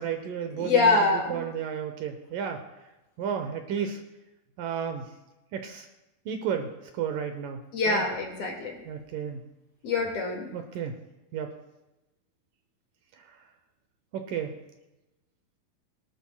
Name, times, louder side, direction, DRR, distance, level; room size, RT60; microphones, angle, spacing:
voice 1, 0.0-2.6 3.2-4.0 4.6-5.1 5.5-5.9 6.3-8.1 8.9-9.4 10.5-11.0 11.3-11.5 13.3-13.4 14.1-14.6, right 7 dB, 75° right, 6 dB, 2.2 m, -33 dB
voice 2, 0.6-1.4 7.7-8.7 9.8-10.5, left 3 dB, 45° left, 1 dB, 2.6 m, -25 dB
22.5 x 12.0 x 2.3 m, 0.99 s
omnidirectional pair, 4.5 m